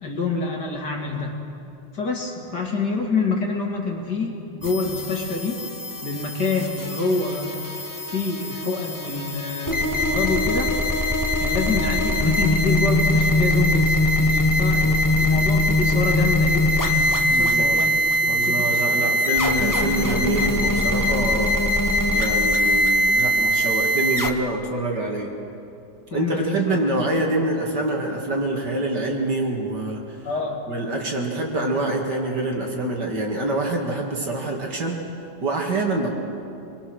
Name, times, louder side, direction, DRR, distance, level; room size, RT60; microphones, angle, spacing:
voice 1, 0.0-1.4 1.9-5.6 6.0-7.5 8.1-10.7 11.4-14.8 15.2-18.0 18.2-19.1 26.1-26.8 30.2-30.6, left 3 dB, 55° left, 0 dB, 2.9 m, -27 dB
sound 1, 4.6-24.3, left 1 dB, 20° left, 0.6 m, -22 dB
voice 2, 17.3-17.8 18.3-21.5 22.1-25.3 26.1-30.2 30.7-35.0 35.4-36.1, right 2 dB, 60° right, 0 dB, 2.7 m, -26 dB
26.0 x 21.0 x 6.4 m, 2.8 s
omnidirectional pair, 2.1 m